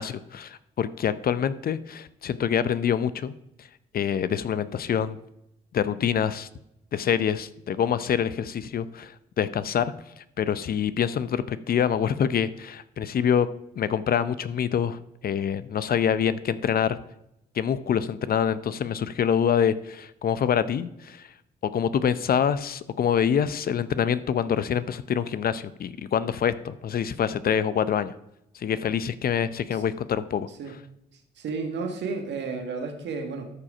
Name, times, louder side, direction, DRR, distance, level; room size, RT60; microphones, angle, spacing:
voice 1, 0.0-3.3 3.9-5.2 5.7-6.5 6.9-13.5 13.8-17.0 17.5-21.3 21.6-28.1 28.5-30.5, left 8 dB, 50° left, 14 dB, 0.6 m, -26 dB
voice 2, 31.1-33.5, right 4 dB, 70° right, 5 dB, 1.7 m, -33 dB
13.0 x 4.9 x 4.9 m, 0.83 s
hypercardioid pair, 55°, 19 cm